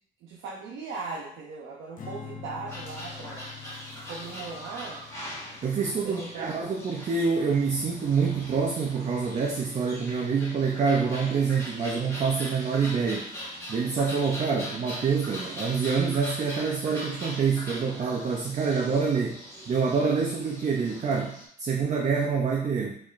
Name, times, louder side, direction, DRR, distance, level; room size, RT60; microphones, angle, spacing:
voice 1, 0.2-3.5 4.0-5.0 6.0-6.6, right 4 dB, 85° right, -4 dB, 0.7 m, -38 dB
Strum, 2.0-8.4, left 7 dB, 40° left, 0.7 m, -46 dB
sound 1, 2.7-21.5, equal, 15° left, 1.3 m, -41 dB
voice 2, 5.6-13.3 13.7-19.4 19.7-23.0, right 5 dB, 35° right, 1 dB, 0.5 m, -26 dB
4.0 x 3.0 x 2.4 m, 0.66 s
cardioid pair, 90°, 20 cm